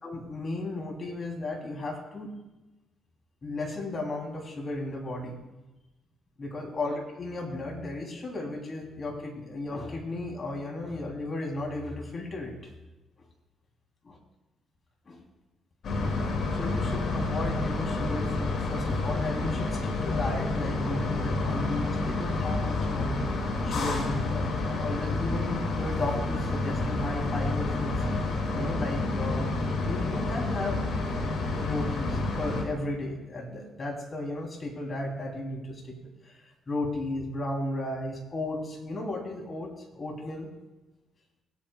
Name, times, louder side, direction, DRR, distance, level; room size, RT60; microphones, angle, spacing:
voice 1, 0.0-2.3 3.4-5.4 6.4-12.7 14.0-14.2 15.0-15.2 16.2-28.1 28.5-29.5 29.8-31.2 31.5-40.5, left 2 dB, 35° left, 0 dB, 3.2 m, -35 dB
sound 1, 15.8-32.6, left 2 dB, 60° left, 2.3 m, -29 dB
22.0 x 8.7 x 2.3 m, 1.1 s
cardioid pair, 90°, 0 cm